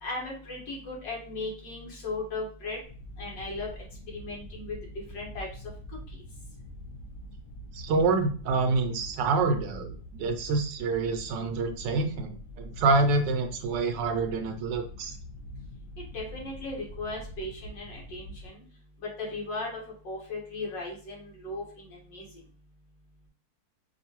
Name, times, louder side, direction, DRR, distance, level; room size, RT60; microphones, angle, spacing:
voice 1, 0.0-2.8 3.2-3.7 4.1-4.8 5.1-5.5 16.0-18.6 19.0-19.8 20.0-22.3, left 2 dB, 75° left, -2 dB, 2.1 m, -37 dB
sound 1, 2.8-18.5, equal, 55° left, 0.9 m, -45 dB
voice 2, 7.7-15.1, right 3 dB, 80° right, 6 dB, 1.2 m, -27 dB
5.2 x 2.6 x 2.8 m, 0.43 s
omnidirectional pair, 2.0 m